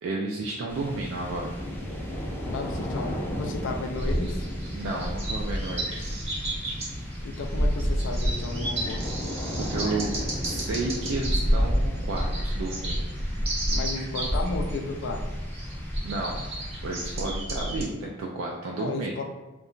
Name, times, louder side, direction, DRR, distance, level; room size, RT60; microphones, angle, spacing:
voice 1, 0.0-1.5 4.7-6.1 9.6-10.2 10.4-13.1 16.0-16.4 16.8-19.1, right 3 dB, 80° right, -1 dB, 0.3 m, -32 dB
sound 1, 0.7-17.6, equal, 10° left, 0.5 m, -36 dB
voice 2, 2.5-4.5 7.2-9.0 13.7-15.2 18.7-19.2, left 3 dB, 70° left, 4 dB, 0.3 m, -33 dB
sound 2, 3.9-17.8, equal, 30° right, 0.6 m, -29 dB
2.8 x 2.2 x 2.5 m, 1.1 s
head